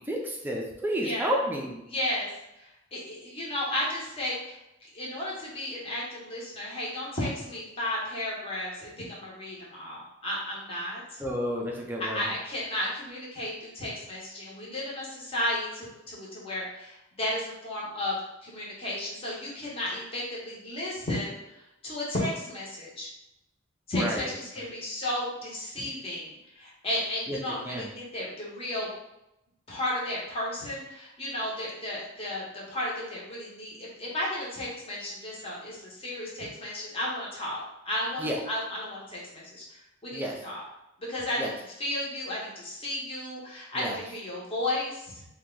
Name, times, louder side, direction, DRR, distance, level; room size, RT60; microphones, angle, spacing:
voice 1, 0.0-1.8 11.2-12.2 24.0-24.2 27.3-27.4 27.7-27.9 38.2-38.3 40.1-40.3 41.4-41.5 43.7-44.0, equal, 10° right, -1 dB, 0.4 m, -30 dB
voice 2, 0.9-1.4 1.9-2.3 2.9-4.6 4.9-11.2 12.0-18.2 18.4-21.3 21.8-23.1 23.9-28.9 29.7-39.6 40.0-40.6 41.0-41.5 41.8-45.2, left 1 dB, 30° left, -5 dB, 0.9 m, -33 dB
2.9 x 2.2 x 3.7 m, 0.89 s
head